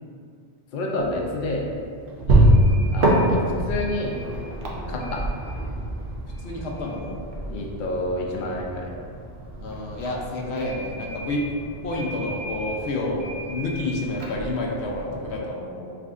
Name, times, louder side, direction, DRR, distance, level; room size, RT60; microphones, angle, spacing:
voice 1, 0.7-1.7 2.9-3.4 3.7-4.1 4.9-5.2 7.5-8.9, left 1 dB, 55° left, -1 dB, 0.6 m, -28 dB
sound 1, 1.0-15.4, right 1 dB, 60° right, 0.8 m, -26 dB
voice 2, 6.4-7.2 9.6-11.4 11.8-16.0, left 2 dB, 85° left, -2 dB, 0.9 m, -29 dB
6.0 x 2.5 x 2.4 m, 2.3 s
omnidirectional pair, 1.1 m